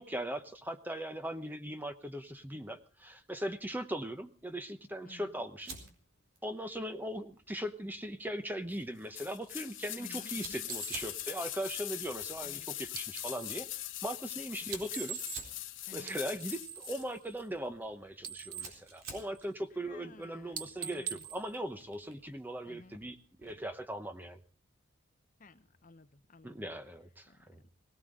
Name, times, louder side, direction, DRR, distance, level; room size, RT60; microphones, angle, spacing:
voice 1, 0.0-5.7 6.4-13.7 14.0-15.2 15.9-24.4 26.4-27.6, equal, 10° right, 9 dB, 0.9 m, -39 dB
voice 2, 5.0-5.4 10.0-10.7 12.4-12.7 14.6-14.7 15.9-16.2 18.6-18.8 19.8-21.2 22.7-23.0 25.4-26.7 27.3-27.7, left 2 dB, 40° left, 11 dB, 0.9 m, -55 dB
Fire, 5.6-23.8, right 4 dB, 90° right, 4.0 m, -54 dB
sound 1, 9.1-17.1 17.4-17.5, left 14 dB, 70° left, 1.2 m, -41 dB
sound 2, 10.7-13.7 14.6-15.7 16.0-17.9 18.1-19.7 20.0-20.2 20.5-22.4, right 9 dB, 45° right, 1.0 m, -45 dB
19.0 x 17.5 x 3.8 m, 0.36 s
head